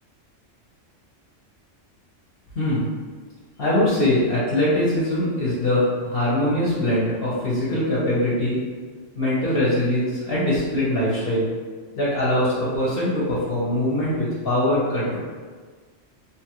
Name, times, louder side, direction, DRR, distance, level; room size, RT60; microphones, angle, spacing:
voice 1, 2.5-2.9 3.6-8.6 9.2-11.5 11.9-15.2, left 1 dB, 55° left, -9 dB, 0.8 m, -22 dB
2.9 x 2.4 x 2.9 m, 1.5 s
omnidirectional pair, 1.3 m